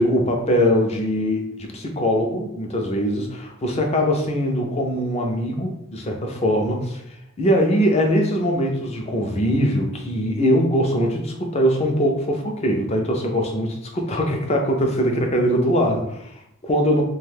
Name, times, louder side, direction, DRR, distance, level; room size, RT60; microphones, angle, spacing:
voice 1, 0.0-17.0, equal, 30° left, 2 dB, 0.4 m, -22 dB
2.4 x 2.2 x 3.3 m, 0.78 s
head